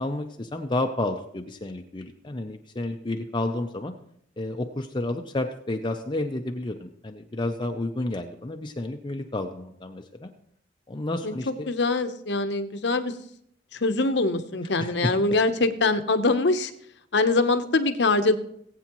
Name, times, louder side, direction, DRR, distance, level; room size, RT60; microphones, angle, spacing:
voice 1, 0.0-3.9 4.4-10.3 10.9-11.7 14.8-15.1, left 2 dB, 25° left, 4 dB, 0.6 m, -31 dB
voice 2, 11.2-13.1 13.7-16.7 17.1-18.4, left 3 dB, 65° left, 9 dB, 0.9 m, -23 dB
19.0 x 8.4 x 3.0 m, 0.71 s
head